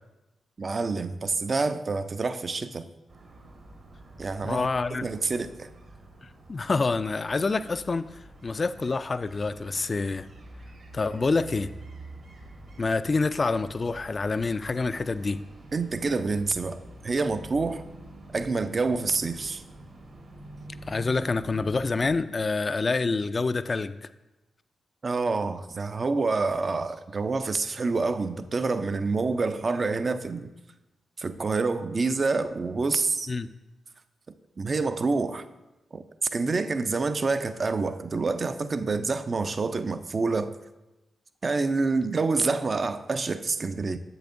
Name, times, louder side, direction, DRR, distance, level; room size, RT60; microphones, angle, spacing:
voice 1, 0.6-2.9 4.2-4.7 5.0-5.7 15.7-17.8 18.3-19.6 25.0-30.5 31.2-33.3 34.6-35.4 35.9-36.0 36.3-40.6 41.4-44.0, right 3 dB, 45° right, 0.4 m, -27 dB
sound 1, 3.1-22.2, right 2 dB, 65° right, 1.4 m, -47 dB
voice 2, 4.4-5.1 6.2-8.1 8.4-10.3 10.9-11.7 12.8-15.4 20.9-24.1 33.3-33.5, left 3 dB, 45° left, 0.3 m, -27 dB
7.6 x 6.9 x 2.5 m
supercardioid pair, 40°, 0 cm